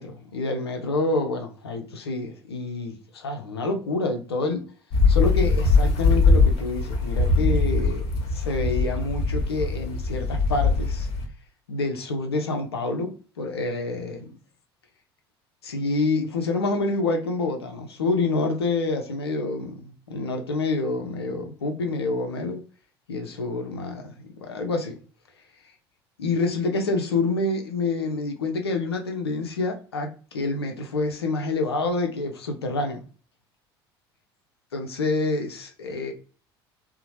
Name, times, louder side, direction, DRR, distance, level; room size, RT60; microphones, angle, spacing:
voice 1, 0.0-4.6 5.1-8.0 8.3-11.1 11.7-14.3 15.6-22.6 23.1-25.0 26.2-33.0 34.7-36.1, left 3 dB, 80° left, 0.5 m, -27 dB
sound 1, 4.9-11.2, left 3 dB, 55° left, 0.8 m, -21 dB
2.8 x 2.0 x 2.7 m
figure-of-eight pair, 65°, 13 cm